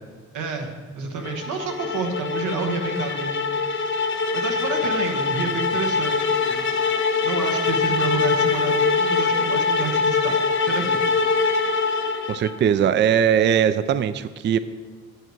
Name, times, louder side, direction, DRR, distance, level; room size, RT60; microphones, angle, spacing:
voice 1, 0.3-3.3 4.3-6.7 7.2-10.4 10.6-11.0, right 5 dB, 80° right, 4 dB, 1.3 m, -29 dB
sound 1, 1.2-12.6, left 4 dB, 40° left, 0.8 m, -23 dB
voice 2, 12.3-14.6, right 8 dB, 40° right, 14 dB, 0.4 m, -20 dB
10.0 x 6.6 x 4.7 m, 1.5 s
cardioid pair, 90°, 30 cm